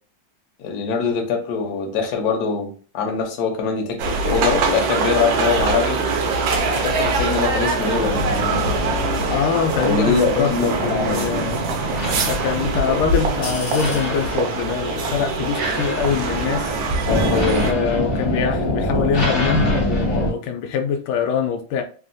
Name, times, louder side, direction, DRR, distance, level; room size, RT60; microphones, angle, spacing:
voice 1, 0.6-6.0 6.7-8.6 9.8-11.4 11.9-12.1 17.1-17.7, left 5 dB, 60° left, 1.1 m, -23 dB
sound 1, 4.0-17.7, right 3 dB, 70° right, 1.2 m, -23 dB
sound 2, 7.9-20.3, equal, 40° left, 0.8 m, -26 dB
voice 2, 9.3-11.6 12.3-16.8 17.5-21.8, left 7 dB, 85° left, 1.5 m, -23 dB
3.6 x 2.4 x 2.5 m
omnidirectional pair, 2.4 m